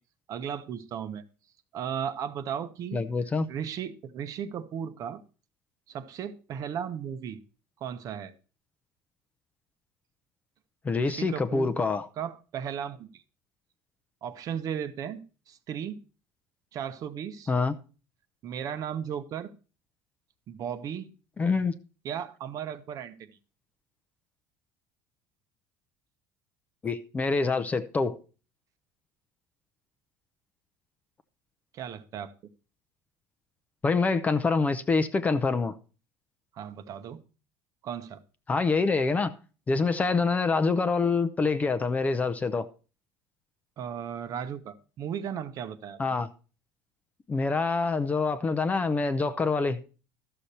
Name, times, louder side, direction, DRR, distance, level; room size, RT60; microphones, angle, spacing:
voice 1, 0.3-1.2 1.7-5.2 5.9-7.4 7.8-8.3 11.0-11.7 12.2-13.2 14.2-16.0 16.7-17.5 18.4-19.5 20.5-21.1 22.0-23.3 31.7-32.3 36.5-37.2 37.8-38.2 43.8-46.2, right 8 dB, 45° right, 0.9 m, -36 dB
voice 2, 2.9-3.5 10.8-12.1 17.5-17.7 21.4-21.7 26.8-28.2 33.8-35.7 38.5-39.3 39.7-42.7 46.0-46.3 47.3-49.8, left 4 dB, 20° left, 0.6 m, -26 dB
13.0 x 6.8 x 4.2 m
cardioid pair, 140°, 8 cm